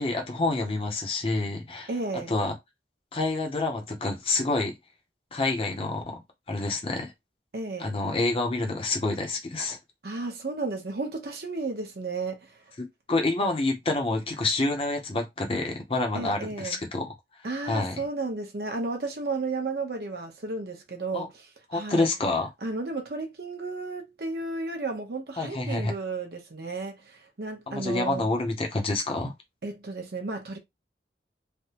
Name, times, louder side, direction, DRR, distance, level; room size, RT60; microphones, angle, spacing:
voice 1, 0.0-1.9 2.3-2.5 3.1-4.8 5.3-6.2 6.5-7.1 7.8-9.8 12.8-17.1 17.7-18.0 21.1-21.3 21.7-22.5 25.4-25.9 27.7-29.3, left 2 dB, 30° left, 0.7 m, -28 dB
voice 2, 1.9-2.3 7.5-7.9 10.0-12.6 16.1-16.8 17.4-22.1 22.6-28.3 29.6-30.6, right 3 dB, 60° right, 0.8 m, -33 dB
3.3 x 2.1 x 2.8 m
head